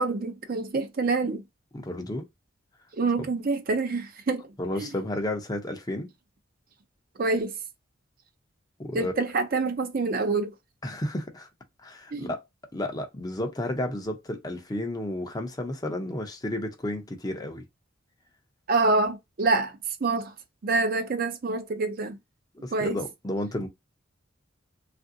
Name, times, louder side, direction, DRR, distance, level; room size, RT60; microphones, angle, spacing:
voice 1, 0.0-1.4 3.0-4.5 4.8-4.9 7.2-7.6 8.9-10.5 12.1-12.3 18.7-20.3 20.6-22.2 22.7-23.0, right 3 dB, 45° right, 0.5 m, -26 dB
voice 2, 1.7-2.3 4.6-6.1 8.8-9.1 10.8-11.5 11.8-12.4 12.7-17.6 22.6-23.7, left 1 dB, 20° left, 0.5 m, -32 dB
3.3 x 2.5 x 2.6 m
head